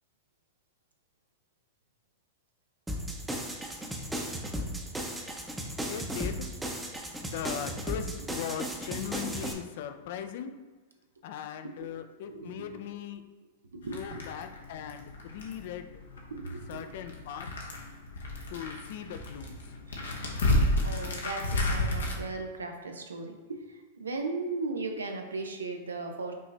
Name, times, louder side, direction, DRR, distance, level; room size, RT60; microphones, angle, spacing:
sound 1, 2.9-9.5, right 1 dB, 10° right, 0.7 m, -35 dB
voice 1, 5.9-6.5 7.2-10.5 11.2-13.2 13.9-15.9 16.7-17.5 18.5-19.5, left 9 dB, 60° left, 8 dB, 0.4 m, -39 dB
voice 2, 12.2-12.8 13.7-14.2 16.3-17.0 19.9-20.0 20.8-26.3, right 3 dB, 90° right, 4 dB, 0.6 m, -37 dB
sound 2, 13.8-22.2, left 1 dB, 85° left, 0.8 m, -32 dB
5.3 x 2.7 x 3.3 m, 1.3 s
hypercardioid pair, 105°, 0 cm